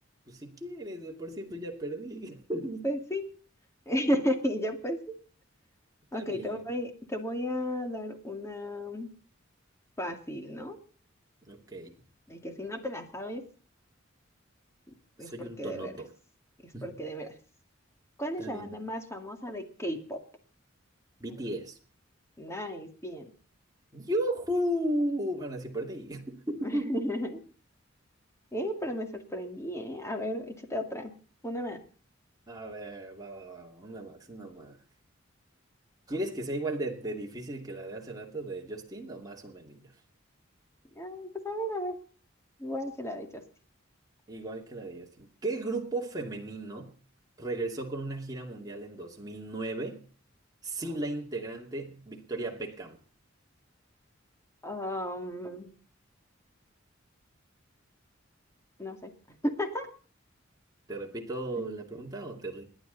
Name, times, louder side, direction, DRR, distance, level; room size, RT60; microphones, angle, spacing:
voice 1, 0.3-2.9 6.1-6.6 11.5-11.9 15.2-16.1 16.7-17.0 18.4-18.8 21.2-21.8 23.9-26.9 32.5-34.8 36.1-39.9 44.3-46.9 47.4-50.0 50.6-53.0 60.9-62.6, right 1 dB, 20° right, 0 dB, 2.6 m, -35 dB
voice 2, 2.8-3.2 3.9-5.0 6.1-9.1 10.0-10.8 12.3-13.4 15.2-15.9 16.6-17.3 18.2-20.2 22.4-23.3 26.6-27.4 28.5-31.1 31.4-31.8 41.0-41.9 42.6-43.4 54.6-55.7 58.8-59.1 59.4-59.9 61.6-61.7, equal, 15° left, 4 dB, 2.4 m, -34 dB
29.5 x 10.5 x 4.1 m, 0.40 s
head